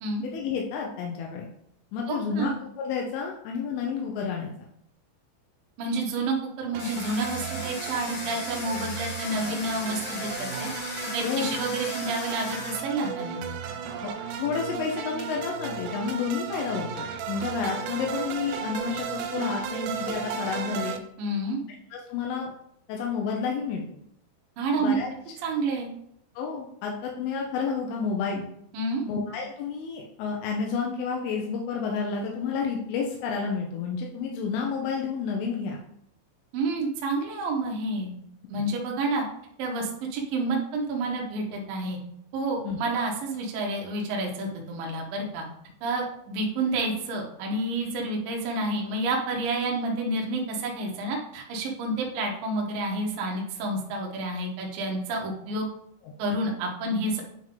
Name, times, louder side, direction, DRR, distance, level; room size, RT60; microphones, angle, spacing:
voice 1, 0.2-1.5 1.9-2.5 2.8-4.7 11.2-11.6 14.0-14.1 14.4-21.0 21.9-22.5 22.9-23.8 24.8-25.1 26.4-28.5 29.1-35.8 42.6-42.8 56.0-56.1, left 5 dB, 85° left, 0 dB, 3.2 m, -30 dB
voice 2, 2.1-2.5 5.8-10.7 11.1-13.4 21.2-21.6 24.6-25.0 25.4-25.9 28.7-29.0 36.5-38.1 38.5-39.2 39.6-42.0 42.3-45.4 45.8-55.6 56.2-57.2, right 2 dB, 70° right, 0 dB, 2.2 m, -29 dB
sound 1, 6.7-21.0, right 7 dB, 90° right, 3.1 m, -35 dB
Domestic sounds home sounds, 6.8-12.8, left 3 dB, 60° left, 1.7 m, -37 dB
9.0 x 3.7 x 3.7 m, 0.72 s
omnidirectional pair, 5.6 m